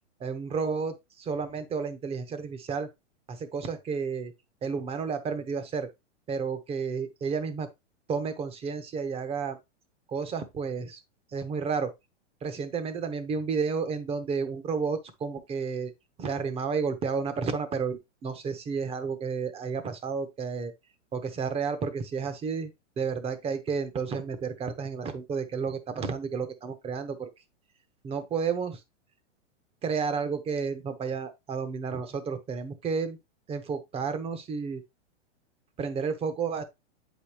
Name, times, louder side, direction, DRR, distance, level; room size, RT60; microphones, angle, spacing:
voice 1, 0.2-2.9 3.3-4.3 4.6-5.9 6.3-7.7 8.1-9.6 10.1-11.0 11.3-11.9 12.4-15.9 16.2-20.7 21.1-27.3 28.0-28.8 29.8-33.2 33.5-34.8 35.8-36.6, right 5 dB, 15° right, 0.8 m, -31 dB
8.0 x 5.1 x 2.9 m
hypercardioid pair, 135°, 36 cm